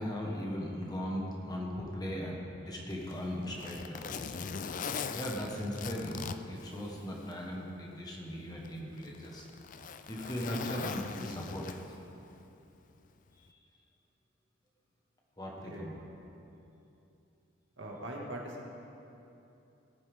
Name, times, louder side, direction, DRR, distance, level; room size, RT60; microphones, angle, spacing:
voice 1, 0.0-4.3 5.1-9.4 10.1-11.8 15.4-16.0, equal, 20° left, -2 dB, 1.4 m, -38 dB
Zipper (clothing), 2.9-7.4 7.8-7.9 8.6-12.1 13.3-13.5, left 5 dB, 40° left, 0.4 m, -41 dB
voice 2, 15.5-15.9 17.8-18.7, right 1 dB, 70° right, -2 dB, 2.0 m, -41 dB
18.0 x 9.5 x 3.6 m, 2.8 s
head